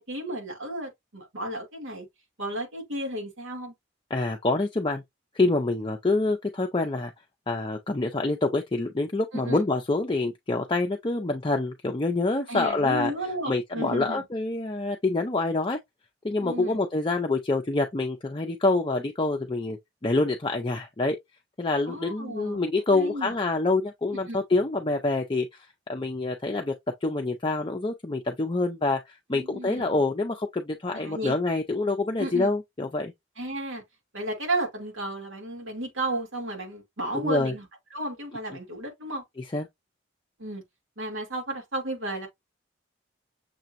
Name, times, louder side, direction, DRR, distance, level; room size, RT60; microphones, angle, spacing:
voice 1, 0.0-2.1 2.4-3.7 9.3-9.6 12.5-14.2 16.4-16.8 21.9-23.4 24.3-24.4 29.3-29.9 30.9-31.4 32.2-32.5 33.4-33.8 34.1-37.6 37.9-39.2 40.4-40.6 41.0-42.3, right 1 dB, 80° right, 2.4 m, -33 dB
voice 2, 4.1-5.0 5.3-7.1 7.5-13.1 13.5-15.8 16.2-19.8 20.0-21.2 21.6-25.5 25.9-26.7 27.0-33.1 37.2-37.5 39.4-39.7, left 2 dB, 25° left, 0.5 m, -26 dB
6.7 x 2.9 x 2.5 m
head